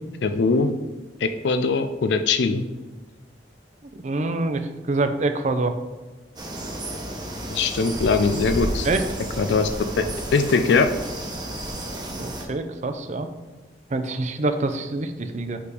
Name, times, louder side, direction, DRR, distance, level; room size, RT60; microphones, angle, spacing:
voice 1, 0.2-0.7 1.2-2.6 7.5-8.9 9.4-9.7 10.0-10.1 10.3-10.9, left 4 dB, 70° left, 8 dB, 0.4 m, -21 dB
voice 2, 3.9-5.8 8.8-9.1 12.1-13.3 13.9-15.6, right 2 dB, 40° right, 8 dB, 0.5 m, -26 dB
sound 1, 6.4-12.5, right 1 dB, 25° right, 1.0 m, -32 dB
5.1 x 4.8 x 5.0 m, 1.2 s
head